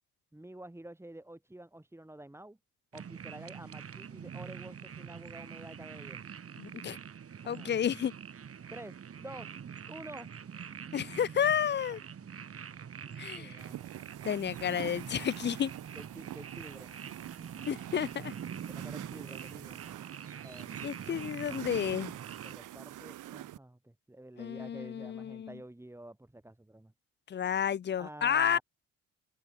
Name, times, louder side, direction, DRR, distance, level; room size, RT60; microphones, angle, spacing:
voice 1, 0.3-2.6 2.9-6.2 7.4-7.8 8.7-9.5 9.9-10.3 13.3-14.1 16.0-17.1 18.7-19.8 20.4-20.9 22.4-26.9 28.0-28.6, right 1 dB, 10° right, 6.3 m, -49 dB
sound 1, 2.9-22.5, right 7 dB, 50° right, 5.3 m, -45 dB
voice 2, 6.6-7.0 7.5-8.1 10.9-12.0 13.2-13.6 14.2-15.7 17.7-18.3 20.8-22.1 24.4-25.6 27.3-28.6, left 8 dB, 35° left, 0.6 m, -31 dB
sound 2, 13.6-23.6, right 14 dB, 85° right, 3.9 m, -45 dB
open air
cardioid pair, 90°, 30 cm